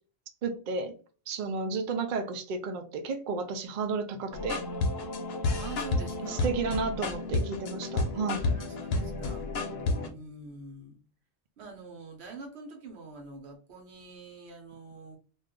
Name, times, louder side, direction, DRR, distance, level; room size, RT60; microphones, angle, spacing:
voice 1, 0.4-1.0 1.3-4.7 6.3-8.5, right 4 dB, 60° right, 0.6 m, -32 dB
sound 1, 4.3-10.1, left 3 dB, 75° left, 0.8 m, -31 dB
voice 2, 5.6-6.5 8.5-9.5 10.1-11.0 11.6-15.2, right 3 dB, 85° right, 1.1 m, -45 dB
2.5 x 2.3 x 3.6 m
omnidirectional pair, 1.1 m